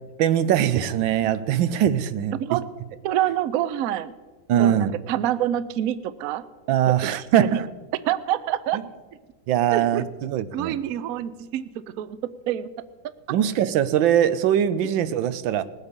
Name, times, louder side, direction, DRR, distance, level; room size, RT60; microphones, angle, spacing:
voice 1, 0.2-2.3 4.5-4.9 6.7-7.7 9.5-10.7 13.3-15.6, right 10 dB, 90° right, 1.4 m, -21 dB
voice 2, 3.0-4.1 4.6-6.4 6.9-7.6 8.1-8.8 9.7-10.1 10.5-12.2 12.5-12.7, right 12 dB, 70° right, 0.8 m, -27 dB
19.5 x 8.1 x 5.3 m
omnidirectional pair, 2.1 m